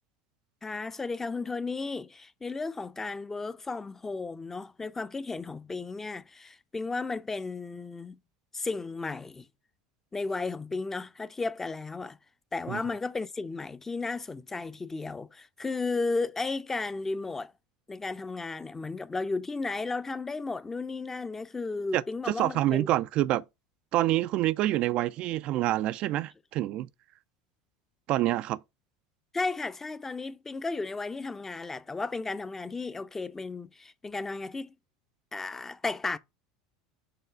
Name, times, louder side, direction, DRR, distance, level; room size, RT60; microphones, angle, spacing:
voice 1, 0.6-8.2 8.5-9.5 10.1-12.2 12.5-17.5 17.9-22.9 29.3-34.7 35.3-36.2, left 3 dB, 15° left, 0.6 m, -34 dB
voice 2, 21.9-23.4 23.9-26.9 28.1-28.6, right 15 dB, 50° right, 0.3 m, -27 dB
6.8 x 3.1 x 5.6 m
hypercardioid pair, 80°, 2 cm